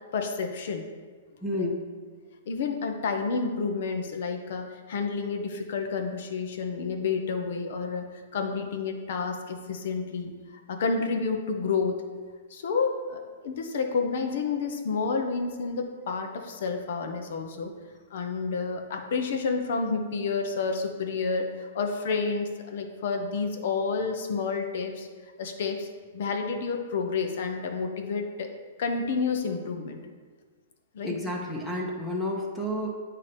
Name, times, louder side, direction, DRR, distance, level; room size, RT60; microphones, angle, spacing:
voice 1, 0.1-0.8 1.5-1.7 2.5-8.1 8.3-12.0 12.5-17.7 18.1-25.1 25.4-25.9 26.1-28.5 28.8-30.0 30.9-31.2, left 4 dB, 65° left, 4 dB, 0.8 m, -30 dB
voice 2, 1.4-1.8 31.0-32.9, left 1 dB, 5° left, -2 dB, 0.8 m, -30 dB
8.1 x 2.9 x 5.1 m, 1.5 s
hypercardioid pair, 130°, 0 cm